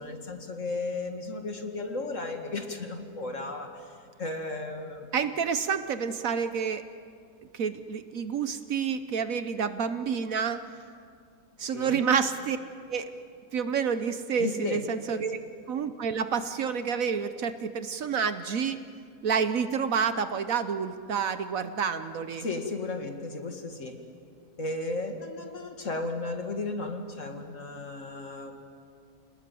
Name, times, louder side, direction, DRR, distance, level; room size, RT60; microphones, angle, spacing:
voice 1, 0.0-3.8 4.2-5.1 11.6-12.0 14.4-14.8 15.1-15.2 22.4-24.0 24.6-28.6, left 2 dB, 50° left, 4 dB, 2.3 m, -34 dB
voice 2, 5.1-6.8 7.5-10.7 11.6-12.6 12.9-13.1 13.5-15.4 15.7-18.8 19.2-22.5, right 6 dB, 60° right, 10 dB, 1.2 m, -29 dB
29.5 x 19.5 x 7.7 m, 2.4 s
omnidirectional pair, 1.7 m